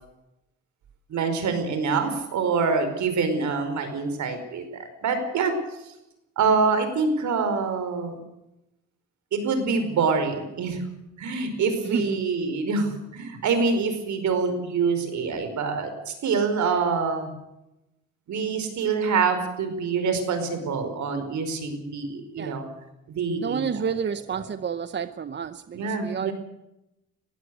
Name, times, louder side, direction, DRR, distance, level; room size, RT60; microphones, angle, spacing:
voice 1, 1.1-5.5 6.4-8.2 9.3-10.8 11.2-17.3 18.3-22.7 23.1-23.8 24.3-24.4 25.7-26.3, right 5 dB, 70° right, 8 dB, 5.0 m, -25 dB
voice 2, 11.8-12.2 22.4-22.6 23.4-26.3, right 7 dB, 35° right, 13 dB, 0.8 m, -30 dB
21.0 x 16.0 x 8.1 m, 0.90 s
cardioid pair, 90°, 30 cm